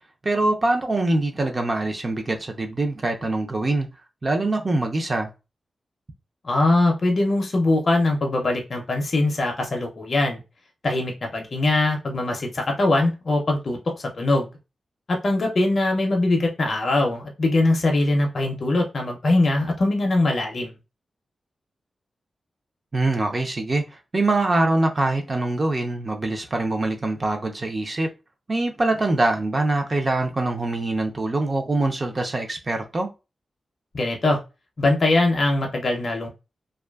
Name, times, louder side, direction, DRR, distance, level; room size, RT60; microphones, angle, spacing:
voice 1, 0.2-3.9 4.2-5.3 22.9-23.8 24.1-28.1 28.5-33.1, right 2 dB, 35° right, 0.4 m, -23 dB
voice 2, 6.4-10.4 10.8-14.5 15.1-20.7 33.9-34.4 34.8-36.3, left 2 dB, 45° left, 0.4 m, -22 dB
2.4 x 2.3 x 2.2 m
wide cardioid pair, 125°, 0 cm